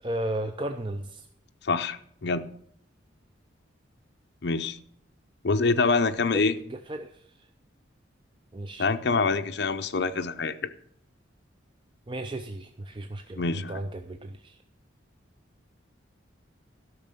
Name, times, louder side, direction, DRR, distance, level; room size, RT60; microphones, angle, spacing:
voice 1, 0.0-1.3 6.3-6.4 6.7-7.5 8.5-8.9 12.1-14.6, right 1 dB, 25° right, 0.5 m, -35 dB
voice 2, 1.7-2.4 4.4-4.8 5.4-6.6 8.8-10.7 13.4-13.8, left 4 dB, 60° left, 0.6 m, -25 dB
12.5 x 6.3 x 6.8 m
head